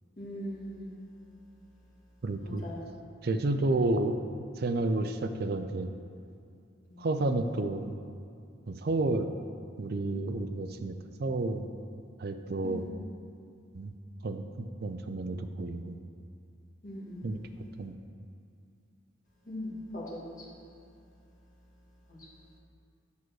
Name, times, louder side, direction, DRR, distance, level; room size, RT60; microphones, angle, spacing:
voice 1, 0.2-0.9 2.4-2.8 12.6-12.8 16.8-17.2 19.5-20.2, left 1 dB, 40° left, -6 dB, 1.8 m, -39 dB
voice 2, 2.2-2.6 3.2-4.2 4.6-5.9 7.0-7.9 8.7-9.3 9.8-10.9 11.2-11.7 12.2-12.8 13.7-13.9 14.2-16.0 17.2-17.4 17.8-18.0, right 2 dB, 50° right, 8 dB, 0.5 m, -30 dB
8.3 x 4.6 x 6.4 m, 2.5 s
head